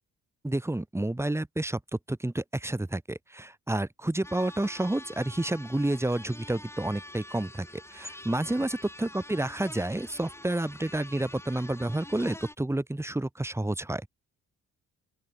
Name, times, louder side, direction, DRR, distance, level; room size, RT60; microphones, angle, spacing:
voice 1, 0.4-1.8 2.1-14.1, right 1 dB, 10° right, 2.7 m, -30 dB
sound 1, 4.2-12.5, left 1 dB, 10° left, 5.9 m, -46 dB
open air
cardioid pair, 90°, 30 cm